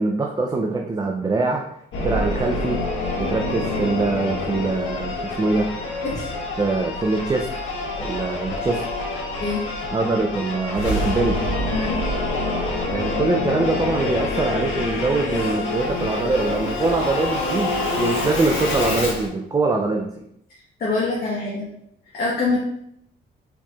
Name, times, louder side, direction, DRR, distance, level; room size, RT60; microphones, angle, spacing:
voice 1, 0.0-1.6 2.0-2.8 3.2-5.7 6.6-7.5 8.0-8.8 9.9-11.4 12.9-20.2, right 3 dB, 20° right, 1 dB, 0.5 m, -23 dB
Singing / Musical instrument, 1.9-19.3, left 2 dB, 80° left, 1.2 m, -26 dB
voice 2, 11.7-12.0 20.8-21.6 22.1-22.6, left 3 dB, 50° left, -5 dB, 1.2 m, -24 dB
4.6 x 4.1 x 2.4 m, 0.74 s
cardioid pair, 90°, 20 cm